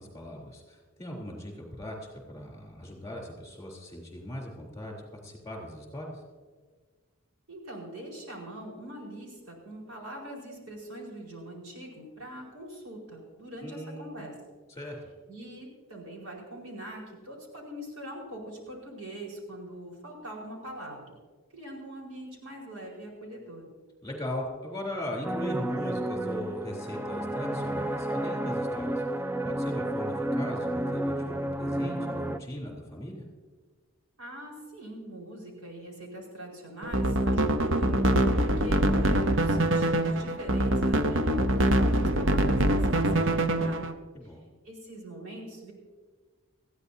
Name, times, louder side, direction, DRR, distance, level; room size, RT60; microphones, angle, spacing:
voice 1, 0.0-6.1 13.6-14.3 14.7-15.0 24.0-29.0 29.4-33.2 44.1-44.4, left 1 dB, 15° left, -1 dB, 3.5 m, -38 dB
voice 2, 7.5-14.3 15.3-21.2 21.5-23.7 34.2-43.8 44.2-44.4 44.6-45.7, right 1 dB, 85° right, -2 dB, 4.7 m, -42 dB
sound 1, 25.2-32.4, right 1 dB, 10° right, 0.4 m, -31 dB
sound 2, 36.8-43.9, right 1 dB, 60° right, 0.8 m, -24 dB
20.0 x 14.5 x 2.8 m, 1.5 s
head